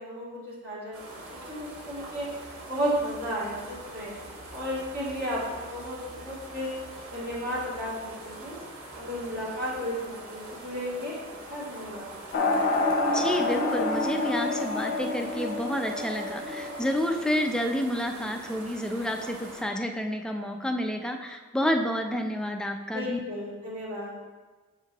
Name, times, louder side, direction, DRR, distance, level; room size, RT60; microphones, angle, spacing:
voice 1, 0.0-2.3 2.7-4.1 4.5-6.7 7.1-8.6 9.0-11.2 11.5-12.1 22.9-24.2, equal, 50° right, -8 dB, 2.1 m, -33 dB
sound 1, 0.9-19.6, right 2 dB, 85° right, 1.4 m, -43 dB
sound 2, 12.3-17.5, left 2 dB, 50° left, 0.7 m, -28 dB
voice 2, 13.1-23.2, equal, 5° left, 4 dB, 0.5 m, -29 dB
7.2 x 6.8 x 2.9 m, 1.3 s
head